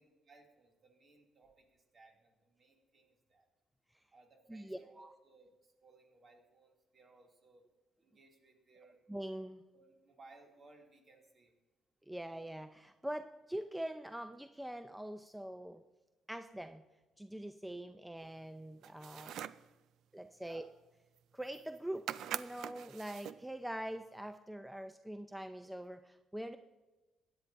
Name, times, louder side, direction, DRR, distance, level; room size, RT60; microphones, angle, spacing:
voice 1, 0.0-3.5 4.1-7.6 8.0-9.0 9.7-11.5 20.4-20.7, right 3 dB, 45° right, 1 dB, 2.5 m, -63 dB
voice 2, 4.5-5.1 9.1-9.6 12.1-15.8 16.3-16.8 17.2-19.4 20.1-20.6 21.3-26.6, right 1 dB, 5° right, 8 dB, 0.5 m, -43 dB
sound 1, 18.8-19.7 21.2-21.3 21.5-21.8 22.1-23.4, right 11 dB, 80° right, 0.3 m, -43 dB
16.0 x 10.0 x 2.6 m, 1.1 s
cardioid pair, 90°, 0 cm